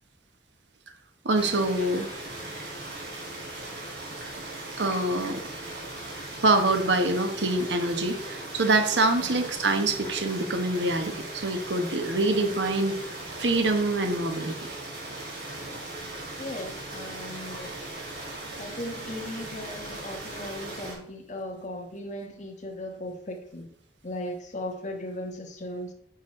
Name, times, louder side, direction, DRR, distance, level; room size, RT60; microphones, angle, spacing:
voice 1, 1.2-2.1 4.8-5.4 6.4-13.0 13.4-14.6, right 2 dB, 90° right, 7 dB, 1.2 m, -25 dB
sound 1, 1.4-20.9, right 2 dB, 65° right, 3.5 m, -38 dB
voice 2, 16.4-17.8 18.6-23.7 24.0-25.9, left 1 dB, 45° left, 2 dB, 1.5 m, -37 dB
9.1 x 6.6 x 3.2 m, 0.69 s
head